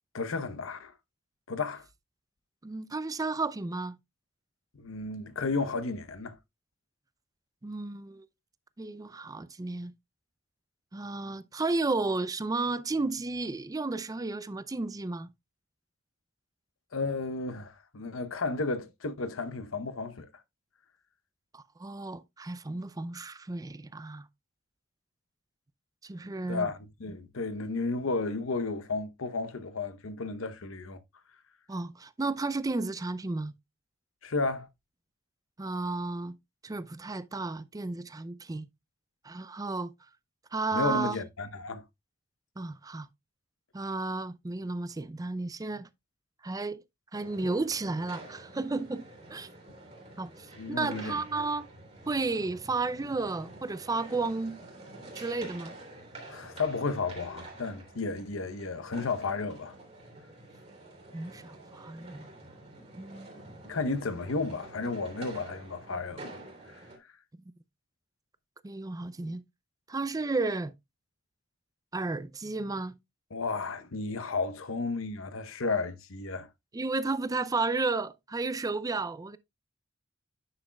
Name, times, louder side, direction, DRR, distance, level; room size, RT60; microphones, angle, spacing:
voice 1, 0.1-0.9 1.5-1.8 4.7-6.4 16.9-20.3 26.5-31.0 34.2-34.7 40.7-41.8 50.5-51.4 56.3-59.7 63.6-66.2 73.3-76.5, left 3 dB, 85° left, 0.9 m, -33 dB
voice 2, 2.6-3.9 7.6-8.3 8.8-9.9 10.9-15.3 21.5-24.3 26.0-26.7 31.7-33.5 35.6-36.4 36.6-38.7 39.2-39.9 40.5-41.2 42.6-43.1 43.7-45.9 46.4-46.8 47.1-49.0 49.3-49.5 50.2-51.7 52.1-54.6 55.1-55.8 61.1-62.3 63.0-63.3 68.6-69.4 69.9-70.7 71.9-73.0 76.7-79.4, right 3 dB, 20° right, 0.4 m, -33 dB
sound 1, 47.1-67.0, right 2 dB, 35° right, 2.8 m, -48 dB
9.8 x 6.1 x 2.3 m
head